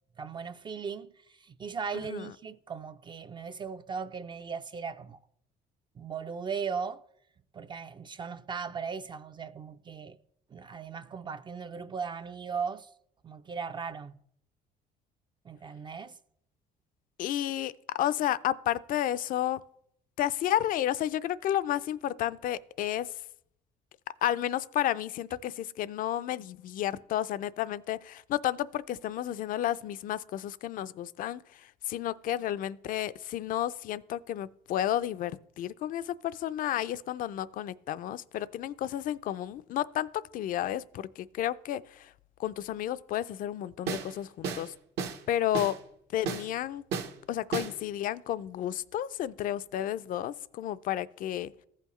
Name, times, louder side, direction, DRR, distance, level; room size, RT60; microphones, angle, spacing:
voice 1, 0.2-5.2 6.0-7.0 7.5-10.2 10.5-12.9 13.2-14.2 15.4-16.2, right 6 dB, 25° right, 0.3 m, -38 dB
voice 2, 1.9-2.3 17.2-19.6 20.2-23.2 24.2-42.1 42.4-44.7 45.3-45.8 46.1-46.8 47.3-51.5, left 12 dB, 55° left, 0.4 m, -32 dB
sound 1, 43.9-44.1 44.4-44.7 45.0-45.2 45.5-45.8 46.3-46.5 46.9-47.1 47.5-47.8, right 6 dB, 75° right, 1.1 m, -33 dB
15.0 x 5.6 x 3.0 m
cardioid pair, 110°, 17 cm